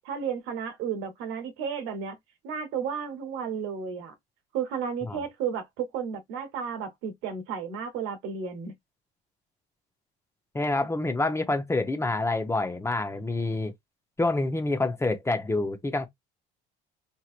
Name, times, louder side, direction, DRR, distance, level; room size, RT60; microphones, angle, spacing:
voice 1, 0.0-2.2 2.4-4.1 4.5-8.7, right 7 dB, 75° right, 1.1 m, -33 dB
voice 2, 10.5-13.7 14.2-16.1, left 2 dB, 15° left, 0.6 m, -27 dB
3.0 x 2.8 x 2.4 m
supercardioid pair, 95°, 21 cm